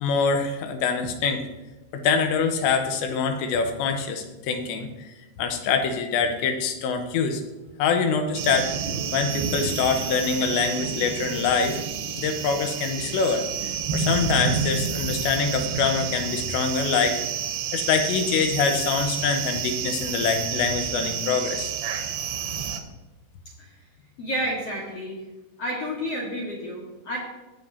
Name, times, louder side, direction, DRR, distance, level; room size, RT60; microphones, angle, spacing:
voice 1, 0.0-1.4 1.9-5.1 5.4-7.4 7.8-8.7 9.1-11.8 12.2-17.2 17.7-21.7, left 5 dB, 80° left, 6 dB, 3.1 m, -24 dB
sound 1, 8.3-22.8, right 7 dB, 75° right, 2.3 m, -29 dB
voice 2, 24.2-25.2 25.6-27.2, equal, 60° left, -4 dB, 1.6 m, -30 dB
20.5 x 7.1 x 2.7 m, 1.1 s
omnidirectional pair, 5.3 m